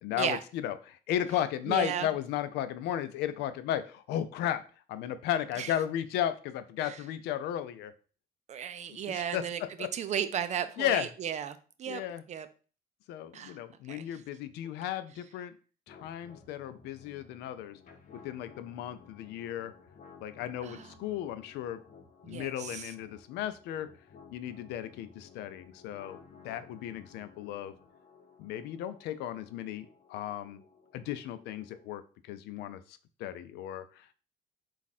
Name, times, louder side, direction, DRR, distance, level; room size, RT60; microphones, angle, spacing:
voice 1, 0.0-4.6 4.9-7.9 8.9-9.4 9.8-9.9 10.8-11.1 11.9-12.2 13.1-15.5 15.9-17.8 18.2-19.7 20.2-21.8 22.2-23.9 24.3-26.2 26.4-27.7 28.4-30.6 30.9-34.1, left 11 dB, 85° left, 0.5 m, -35 dB
voice 2, 1.7-2.1 5.6-5.7 6.8-7.0 8.5-9.6 9.9-12.0 12.3-12.5 13.3-13.6 13.9-14.0 20.6-20.9 22.2-22.9, right 9 dB, 45° right, 0.5 m, -35 dB
sound 1, 15.9-31.9, left 6 dB, 50° left, 0.9 m, -56 dB
4.2 x 2.4 x 4.1 m
cardioid pair, 110°, 17 cm